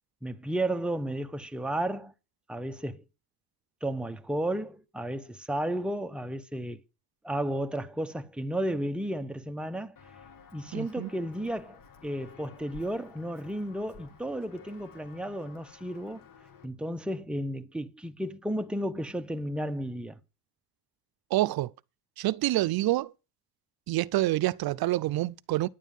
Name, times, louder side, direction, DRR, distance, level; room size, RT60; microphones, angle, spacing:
voice 1, 0.2-2.1 2.5-3.0 3.8-6.8 7.2-9.9 10.5-16.2 16.6-20.2, right 1 dB, 5° right, 0.8 m, -33 dB
Walk footsteps, 10.0-16.7, left 5 dB, 60° left, 1.9 m, -53 dB
voice 2, 10.7-11.1 21.3-21.7 22.2-23.1 23.9-25.7, right 16 dB, 70° right, 0.6 m, -27 dB
10.0 x 9.3 x 5.4 m
cardioid pair, 120°, 38 cm